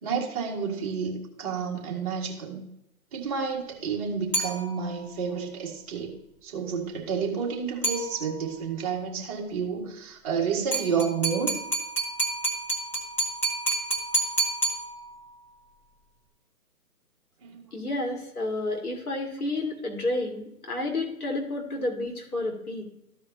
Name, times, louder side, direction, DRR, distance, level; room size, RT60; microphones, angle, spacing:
voice 1, 0.0-2.6 3.1-11.6 17.4-17.7, right 6 dB, 25° right, -3 dB, 1.9 m, -30 dB
sound 1, 4.3-5.1 7.8-8.6 10.7-15.4, right 2 dB, 5° left, 1.1 m, -29 dB
voice 2, 17.7-22.8, left 2 dB, 80° left, 1 dB, 2.7 m, -30 dB
14.5 x 4.9 x 2.8 m, 0.83 s
hypercardioid pair, 155°, 44 cm